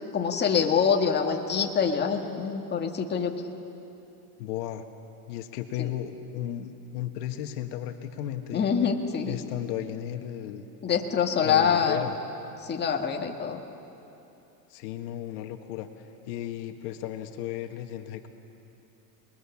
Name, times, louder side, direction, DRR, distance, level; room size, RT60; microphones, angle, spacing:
voice 1, 0.1-3.3 5.8-5.9 8.5-9.4 10.8-12.1 12.6-13.6, left 6 dB, 20° left, 2 dB, 1.7 m, -25 dB
voice 2, 4.4-4.8 5.3-8.7 9.2-10.6 11.4-12.2 14.7-15.9 16.3-18.3, left 11 dB, 70° left, 6 dB, 1.7 m, -35 dB
28.0 x 21.0 x 7.2 m, 2.9 s
supercardioid pair, 135°, 49 cm